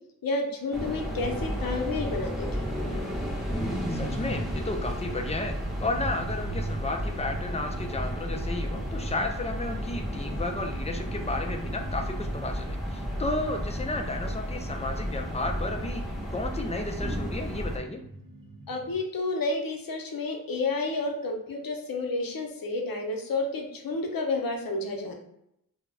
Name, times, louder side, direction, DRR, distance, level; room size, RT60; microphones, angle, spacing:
voice 1, 0.2-2.6 18.7-25.1, left 3 dB, 65° left, 2 dB, 0.6 m, -30 dB
sound 1, 0.7-17.8, equal, ahead, 0.7 m, -33 dB
sound 2, 2.4-18.9, right 1 dB, 65° right, 0.5 m, -43 dB
voice 2, 3.9-5.6 5.8-16.0 16.3-18.0, left 2 dB, 20° left, 4 dB, 0.3 m, -33 dB
2.3 x 2.0 x 3.4 m, 0.78 s
wide cardioid pair, 60°, 37 cm